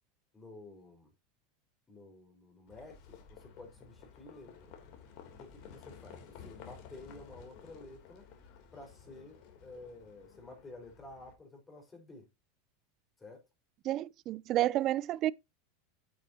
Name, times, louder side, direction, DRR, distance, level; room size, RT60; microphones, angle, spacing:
voice 1, 0.3-1.1 1.9-4.7 5.4-8.3 8.7-12.3 13.2-13.4, left 2 dB, 20° left, 5.0 m, -52 dB
Livestock farm animals working animals, 2.7-11.3, left 6 dB, 55° left, 3.2 m, -54 dB
voice 2, 13.8-15.3, right 14 dB, 45° right, 0.5 m, -30 dB
9.3 x 8.3 x 2.9 m
hypercardioid pair, 100°, 0 cm